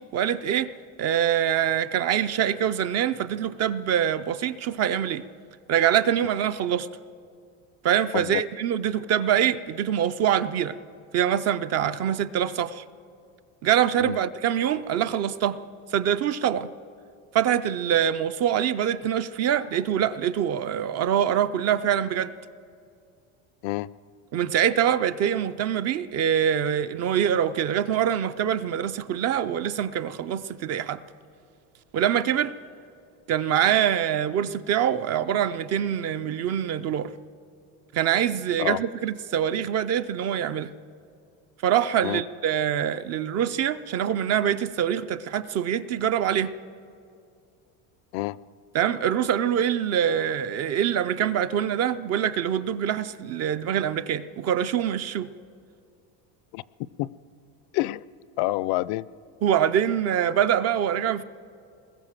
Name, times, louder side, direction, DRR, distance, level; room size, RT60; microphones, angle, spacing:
voice 1, 0.1-0.7 1.0-5.2 5.7-6.9 7.8-10.8 11.1-12.8 13.6-15.6 15.9-16.7 17.3-22.3 24.3-31.0 31.9-32.5 33.3-37.1 37.9-40.7 41.6-46.5 48.7-55.3 59.4-61.2, right 9 dB, 35° right, 0.4 m, -24 dB
voice 2, 57.7-58.0 58.4-59.1, left 18 dB, 60° left, 0.5 m, -27 dB
23.0 x 20.5 x 7.4 m
cardioid pair, 160°, 44 cm